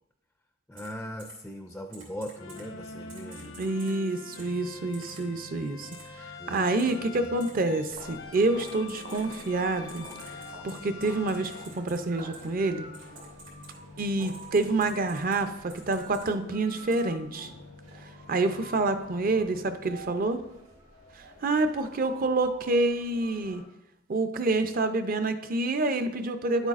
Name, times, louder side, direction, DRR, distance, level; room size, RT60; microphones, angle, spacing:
voice 1, 0.7-3.6 6.4-7.3, equal, 5° left, 4 dB, 0.4 m, -40 dB
Typing, 0.8-0.9 1.2-1.3 1.9-2.6 3.1-3.9 4.3-4.4 4.9-5.2 5.9-6.0 6.8-6.9 7.4-7.5 7.8-7.9 8.6-9.4 9.9-12.0 12.3-12.5 12.9-13.7 14.2-15.4 15.7-16.2 16.7-17.0, right 3 dB, 85° right, 2.9 m, -49 dB
sound 1, 2.3-20.1, left 4 dB, 90° left, 0.9 m, -46 dB
voice 2, 3.6-10.0 10.6-12.9 14.0-17.5 18.3-20.4 21.1-23.6 24.1-26.7, right 2 dB, 45° right, 9 dB, 0.5 m, -28 dB
sound 2, 7.9-23.6, right 2 dB, 70° right, 2.4 m, -49 dB
10.0 x 8.0 x 2.5 m, 0.90 s
head